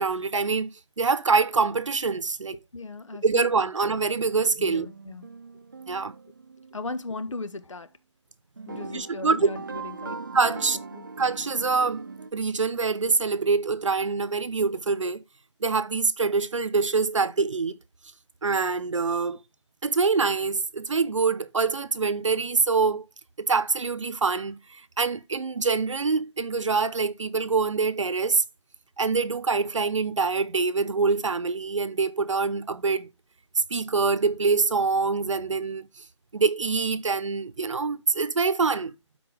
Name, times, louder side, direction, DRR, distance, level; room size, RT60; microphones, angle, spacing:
voice 1, 0.0-2.6 3.2-4.9 5.9-6.1 8.9-9.5 10.3-10.8 11.2-12.0 12.3-15.2 15.6-17.8 18.4-19.4 19.8-23.1 23.4-28.4 29.0-33.1 33.6-36.0 36.3-38.9, right 4 dB, 85° right, 1.0 m, -25 dB
voice 2, 2.7-3.5 4.6-5.3 6.7-7.9 8.7-10.2 10.5-10.6 10.9-11.1, left 3 dB, 90° left, 1.5 m, -37 dB
sound 1, 4.7-7.0 8.6-12.3, right 4 dB, 40° right, 0.6 m, -40 dB
12.0 x 4.6 x 3.5 m
hypercardioid pair, 180°, 16 cm